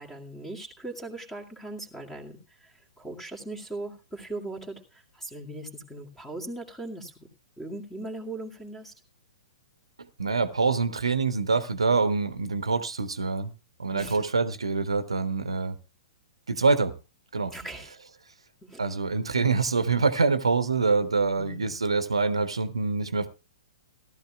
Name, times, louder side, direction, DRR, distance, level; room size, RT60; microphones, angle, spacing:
voice 1, 0.0-7.3 7.6-8.9 13.9-14.2 17.5-17.9 18.6-18.8 21.4-21.8, right 2 dB, 5° left, 2.1 m, -39 dB
voice 2, 10.0-13.5 13.8-15.8 16.5-16.9 17.3-17.5 18.8-23.3, right 4 dB, 70° right, 1.0 m, -25 dB
17.5 x 13.0 x 2.3 m
figure-of-eight pair, 110°, 3 cm